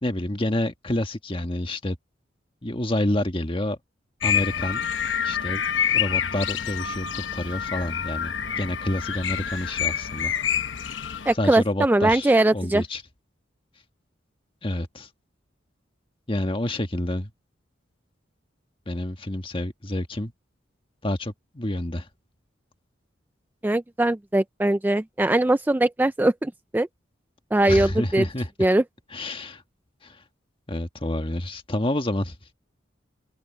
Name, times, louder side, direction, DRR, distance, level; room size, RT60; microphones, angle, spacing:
voice 1, 0.0-1.9 2.6-3.8 4.2-4.8 5.2-5.6 5.9-10.3 11.4-13.0 14.6-15.1 16.3-17.3 18.9-20.3 21.0-22.1 27.7-28.5 29.1-29.6 30.0-30.2 30.7-32.3, left 1 dB, 30° left, 1.5 m, -28 dB
sound 1, 4.2-11.3, left 8 dB, 85° left, 1.0 m, -27 dB
voice 2, 11.3-12.8 23.6-26.9 27.5-28.3 28.6-28.8, right 1 dB, 10° right, 0.3 m, -21 dB
open air
head